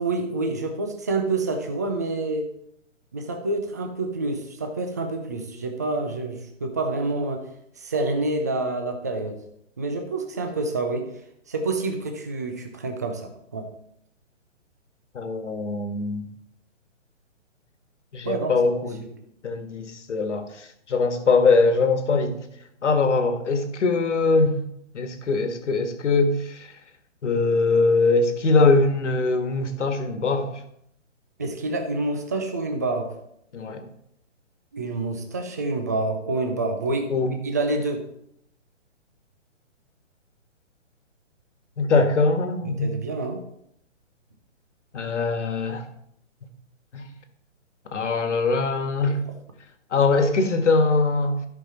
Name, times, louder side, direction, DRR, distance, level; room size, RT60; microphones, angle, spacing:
voice 1, 0.0-2.5 3.1-7.4 7.8-9.4 9.8-11.1 11.5-13.7 18.3-18.5 31.4-33.1 34.7-37.1 37.4-38.0 42.0-42.1 42.6-43.4, right 2 dB, 15° right, 4 dB, 0.4 m, -27 dB
voice 2, 15.1-16.3 18.1-19.0 19.4-22.4 22.8-24.6 24.9-26.7 27.2-30.6 33.5-33.9 37.1-37.3 41.8-42.9 44.9-45.8 46.9-47.1 47.9-49.2 49.9-51.4, left 3 dB, 70° left, 7 dB, 1.7 m, -22 dB
12.5 x 5.6 x 4.2 m, 0.75 s
hypercardioid pair, 155°, 37 cm